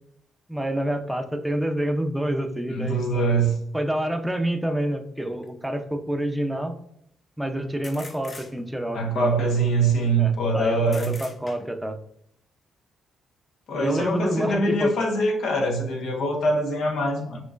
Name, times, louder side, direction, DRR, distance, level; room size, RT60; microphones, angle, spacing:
voice 1, 0.5-3.3 3.7-6.8 7.4-9.4 10.2-12.0 13.8-14.9, right 1 dB, 5° right, 0.6 m, -28 dB
voice 2, 2.7-3.6 8.9-11.1 13.7-17.4, right 2 dB, 70° left, 1.2 m, -23 dB
sound 1, 5.4-5.5 7.8-8.9 10.9-11.9, left 2 dB, 30° left, 0.8 m, -42 dB
5.9 x 3.0 x 2.5 m
cardioid pair, 90°, 0 cm